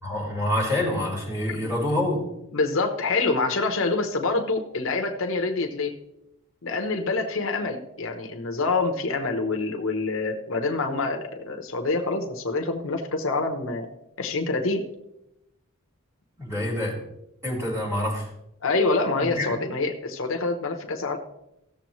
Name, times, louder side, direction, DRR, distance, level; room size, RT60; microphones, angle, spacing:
voice 1, 0.0-2.2 16.4-16.9 17.4-18.2 19.3-19.5, left 1 dB, 15° right, -5 dB, 4.5 m, -26 dB
voice 2, 2.5-5.9 6.6-13.9 14.2-14.8 18.6-21.2, left 3 dB, 65° left, 4 dB, 1.0 m, -26 dB
16.5 x 7.1 x 3.1 m, 0.87 s
head